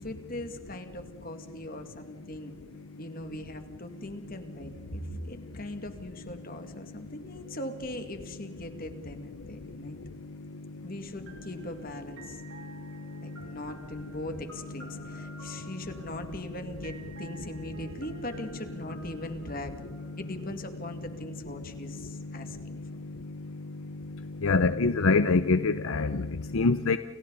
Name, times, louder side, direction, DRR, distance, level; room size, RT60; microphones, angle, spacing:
voice 1, 0.0-2.5 3.0-10.0 10.8-12.4 13.2-19.7 20.2-22.8, left 1 dB, 40° left, 2.2 m, -40 dB
sound 1, 11.3-21.1, right 2 dB, 55° right, 4.5 m, -51 dB
voice 2, 24.4-27.0, left 4 dB, 75° left, 0.7 m, -24 dB
29.5 x 29.0 x 4.1 m
head